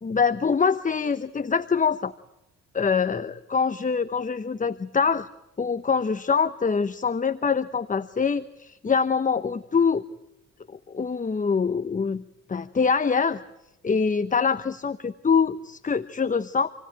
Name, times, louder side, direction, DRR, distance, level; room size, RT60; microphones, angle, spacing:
voice 1, 0.0-2.1 2.7-5.3 5.6-10.0 10.7-12.2 12.5-13.4 13.8-16.7, left 5 dB, 25° left, 12 dB, 1.0 m, -24 dB
28.5 x 18.5 x 9.0 m, 0.93 s
cardioid pair, 90°, 30 cm